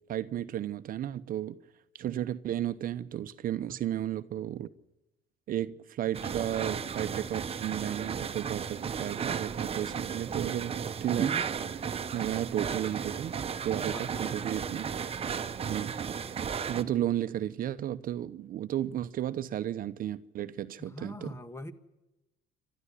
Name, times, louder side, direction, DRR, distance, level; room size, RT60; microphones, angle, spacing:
voice 1, 0.1-1.6 1.9-4.7 5.5-11.4 12.1-13.3 13.6-14.9 15.6-16.0 16.7-21.4, right 11 dB, 55° right, 0.8 m, -33 dB
sound 1, 6.1-16.8, right 7 dB, 35° right, 1.1 m, -34 dB
voice 2, 13.9-14.4 20.8-21.7, left 1 dB, 15° left, 1.6 m, -43 dB
28.0 x 13.0 x 9.9 m
cardioid pair, 110°, 17 cm